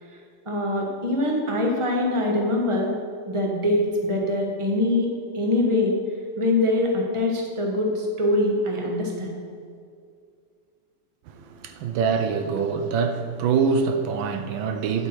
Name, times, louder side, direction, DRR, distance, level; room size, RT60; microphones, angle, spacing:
voice 1, 0.4-2.9 3.3-5.9 6.4-9.4, left 1 dB, 20° right, 1.2 m, -23 dB
voice 2, 11.3-15.1, right 5 dB, 80° right, 1.5 m, -24 dB
9.2 x 8.2 x 4.6 m
omnidirectional pair, 2.1 m